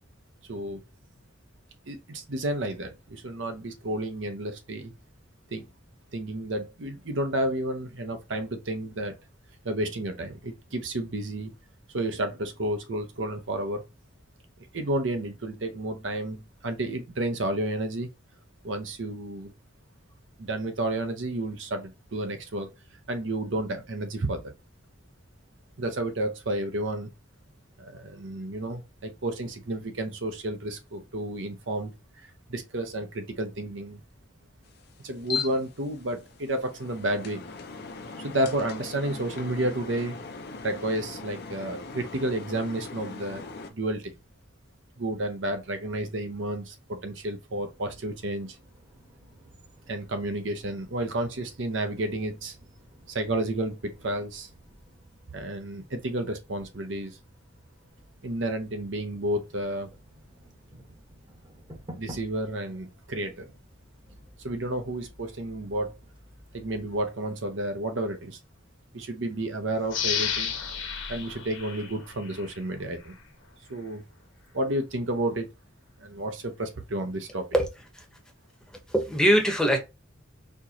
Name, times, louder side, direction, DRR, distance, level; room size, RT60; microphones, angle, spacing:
voice 1, 0.5-0.8 1.9-4.9 5.5-5.6 6.1-9.2 9.6-11.5 11.9-13.8 14.7-18.1 18.6-19.5 20.4-22.7 23.1-24.4 25.8-27.1 27.8-31.9 32.5-34.0 35.0-37.4 38.2-40.2 40.6-43.4 43.7-44.1 45.0-48.6 49.9-52.5 53.1-54.5 55.3-57.2 58.2-59.9 61.9-63.5 64.4-65.9 66.5-68.4 68.9-70.5 71.1-73.1 73.7-74.0 74.5-75.5 76.0-77.5, right 1 dB, 70° right, 0.8 m, -31 dB
sound 1, 34.6-43.7, left 4 dB, 55° left, 0.7 m, -39 dB
sound 2, 47.5-67.0, equal, 25° right, 1.1 m, -53 dB
sound 3, 69.9-72.6 73.0-73.1, left 7 dB, 80° left, 1.2 m, -32 dB
voice 2, 78.9-79.8, equal, 5° left, 0.9 m, -22 dB
4.4 x 3.0 x 2.8 m
head